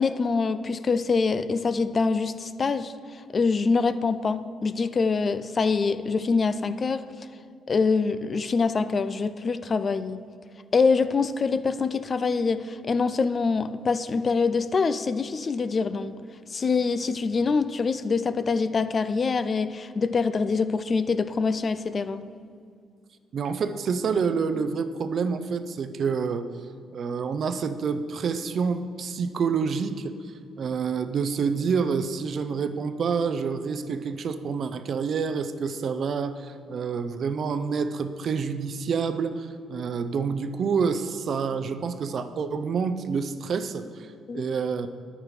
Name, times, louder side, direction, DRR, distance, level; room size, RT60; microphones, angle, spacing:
voice 1, 0.0-7.1 7.7-10.2 10.7-16.2 16.5-22.3 44.3-44.5, left 4 dB, 45° left, 12 dB, 0.4 m, -25 dB
voice 2, 23.3-26.5 26.9-30.2 30.6-44.9, right 5 dB, 55° right, 11 dB, 0.5 m, -28 dB
9.9 x 8.8 x 3.2 m, 2.2 s
hypercardioid pair, 55°, 0 cm